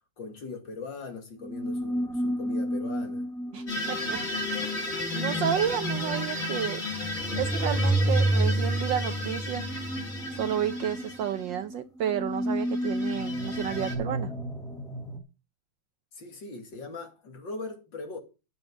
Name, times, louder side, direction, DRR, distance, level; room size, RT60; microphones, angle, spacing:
voice 1, 0.2-3.3 16.1-18.2, left 3 dB, 55° left, 2.8 m, -40 dB
sound 1, 1.4-15.2, right 1 dB, ahead, 0.9 m, -31 dB
voice 2, 3.5-4.2 4.6-6.8 7.4-9.6 10.3-14.3, right 9 dB, 70° right, 1.2 m, -31 dB
sound 2, 3.7-11.5 12.6-13.9, left 2 dB, 30° left, 2.7 m, -34 dB
9.8 x 6.8 x 6.0 m
omnidirectional pair, 2.4 m